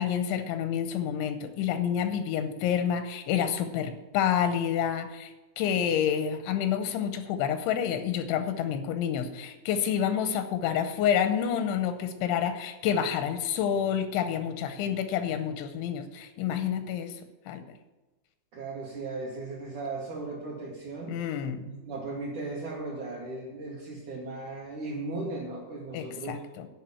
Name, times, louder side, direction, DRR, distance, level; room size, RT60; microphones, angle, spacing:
voice 1, 0.0-17.2 17.5-17.6 21.1-21.7 25.9-26.7, left 8 dB, 85° left, 9 dB, 2.9 m, -28 dB
voice 2, 18.5-21.2 21.7-26.4, right 3 dB, 65° right, -2 dB, 2.0 m, -37 dB
10.5 x 5.7 x 8.3 m, 1.2 s
omnidirectional pair, 5.5 m